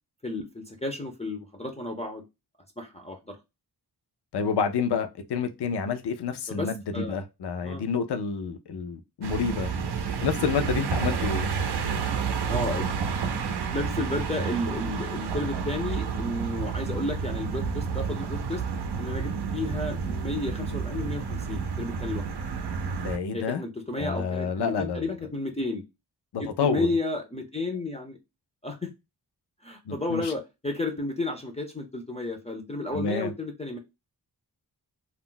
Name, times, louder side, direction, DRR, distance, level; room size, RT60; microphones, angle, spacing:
voice 1, 0.2-2.2 2.8-3.4 6.5-7.2 7.6-7.8 12.4-12.9 13.7-18.6 19.0-22.3 23.3-25.8 26.4-28.2 28.6-28.9 29.6-33.8, left 2 dB, 15° left, 0.5 m, -32 dB
voice 2, 4.3-9.7 10.2-11.5 23.0-23.6 24.0-25.1 26.3-26.9 29.9-30.3 32.9-33.3, left 6 dB, 75° left, 0.6 m, -29 dB
sound 1, 9.2-23.2, right 6 dB, 75° right, 0.5 m, -30 dB
2.3 x 2.0 x 3.7 m
wide cardioid pair, 85°, 40 cm